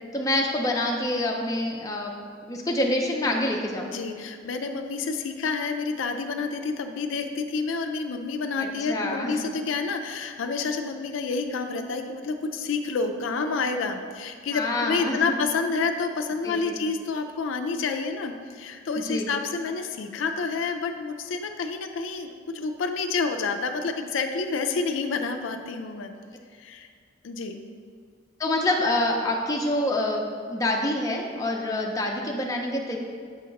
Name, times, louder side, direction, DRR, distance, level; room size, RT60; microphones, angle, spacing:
voice 1, 0.1-2.1 2.4-3.9 8.6-9.4 14.5-15.4 16.4-16.8 19.0-19.3 28.4-33.0, left 1 dB, 15° left, 0 dB, 0.5 m, -26 dB
voice 2, 3.9-26.1 26.6-26.9 27.2-27.6, left 4 dB, 75° left, 6 dB, 0.4 m, -29 dB
7.0 x 2.8 x 5.1 m, 2.1 s
head